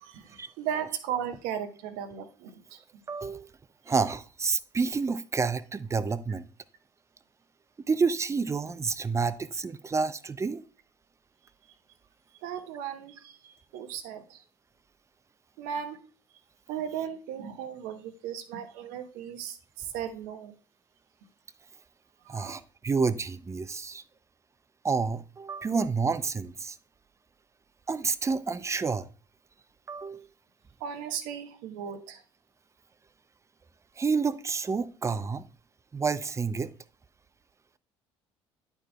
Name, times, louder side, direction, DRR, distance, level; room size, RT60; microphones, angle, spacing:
voice 1, 0.0-2.8 12.4-14.4 15.6-16.0 16.7-20.5 22.2-22.5 30.8-32.2, right 9 dB, 65° right, 0.9 m, -36 dB
voice 2, 3.1-3.5 3.9-6.5 7.9-10.6 22.3-24.0 24.8-26.8 27.9-29.1 29.9-30.3 34.0-35.4 35.9-36.7, right 5 dB, 20° right, 0.5 m, -29 dB
11.0 x 4.6 x 2.3 m
figure-of-eight pair, 55°, 15 cm